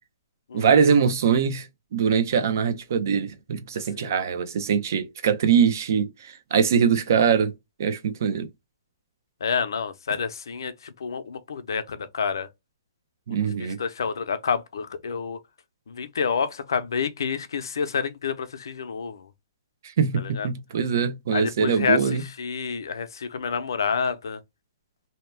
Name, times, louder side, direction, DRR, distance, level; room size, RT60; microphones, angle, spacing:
voice 1, 0.5-7.5 7.8-8.5 13.3-13.8 20.0-22.2, right 6 dB, 55° right, 0.6 m, -22 dB
voice 2, 9.4-12.5 13.3-15.4 15.9-19.3 20.2-20.5 21.3-24.4, left 6 dB, 85° left, 0.6 m, -29 dB
2.8 x 2.2 x 3.2 m
hypercardioid pair, 165°, 2 cm